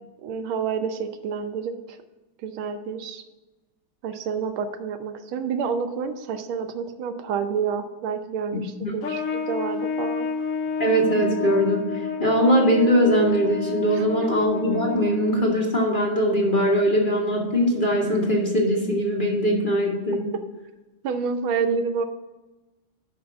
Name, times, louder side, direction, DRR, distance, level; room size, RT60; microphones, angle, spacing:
voice 1, 0.2-2.0 2.4-3.2 4.0-10.3 13.9-14.0 20.3-20.4 21.0-22.1, right 6 dB, 85° right, 8 dB, 1.6 m, -28 dB
voice 2, 8.5-8.9 10.8-20.3, equal, 30° left, -2 dB, 1.2 m, -21 dB
Trumpet, 9.0-15.5, left 5 dB, 60° left, 0.8 m, -30 dB
6.1 x 5.9 x 7.1 m, 1.1 s
omnidirectional pair, 2.2 m